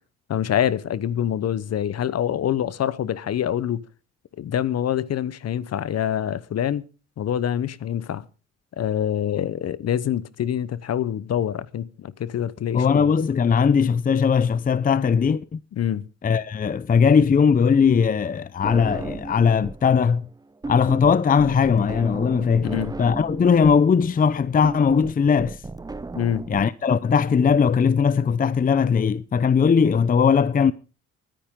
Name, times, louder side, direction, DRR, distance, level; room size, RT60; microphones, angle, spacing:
voice 1, 0.3-3.8 4.4-6.8 7.2-8.2 8.8-13.1 15.7-16.1 22.6-23.0 26.1-26.4, left 10 dB, 55° left, 0.9 m, -25 dB
voice 2, 12.7-15.6 16.2-20.2 20.7-25.6 26.5-30.7, left 6 dB, 30° left, 0.6 m, -19 dB
sound 1, 18.6-19.9 20.2-26.6, right 3 dB, 15° right, 0.6 m, -35 dB
24.5 x 10.0 x 3.7 m
cardioid pair, 90°, 30 cm